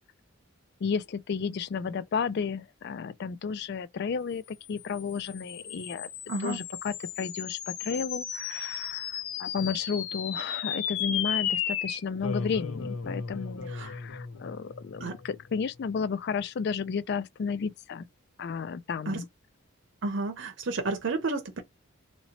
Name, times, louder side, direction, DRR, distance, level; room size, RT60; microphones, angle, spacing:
voice 1, 0.8-6.1 6.4-18.1 18.4-19.3, left 6 dB, 50° left, 0.3 m, -33 dB
sound 1, 4.8-15.4, left 7 dB, 80° left, 0.8 m, -35 dB
voice 2, 20.0-21.6, right 3 dB, 55° right, 0.6 m, -31 dB
2.8 x 2.8 x 2.8 m
head